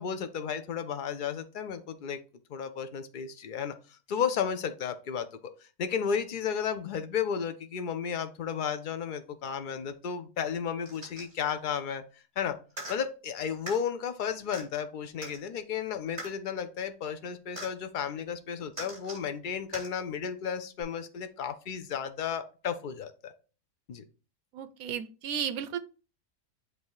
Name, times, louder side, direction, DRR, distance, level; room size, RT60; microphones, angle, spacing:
voice 1, 0.0-2.2 2.5-12.0 12.4-12.6 12.9-23.3 23.9-24.0, left 7 dB, 85° left, 9 dB, 0.4 m, -33 dB
sound 1, 10.8-11.4 12.7-13.0 13.7-13.8 14.5-14.6 15.2-15.4 16.2-16.3 17.6-17.7 18.7-19.2 19.7-19.9 20.8-20.9, right 1 dB, 30° right, 3.7 m, -41 dB
voice 2, 24.5-25.8, right 8 dB, 80° right, 11 dB, 1.1 m, -34 dB
7.9 x 2.7 x 4.7 m, 0.34 s
omnidirectional pair, 1.5 m